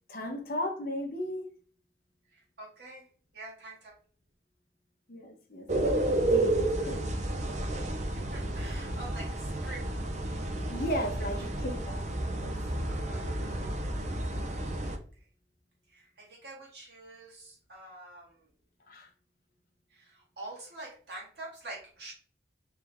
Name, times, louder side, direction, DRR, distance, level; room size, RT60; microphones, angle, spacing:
voice 1, 0.1-1.5 5.1-7.2 10.7-12.0 12.3-12.5 18.9-19.1, equal, 50° left, 0.8 m, -36 dB
voice 2, 2.3-3.1 3.3-4.0 8.0-10.1 11.5-11.6 12.8-13.7 14.9-15.3 15.9-18.5 19.9-22.1, right 2 dB, 60° right, 1.7 m, -47 dB
sound 1, 5.7-15.0, right 1 dB, 40° right, 0.5 m, -31 dB
3.4 x 3.3 x 3.4 m
head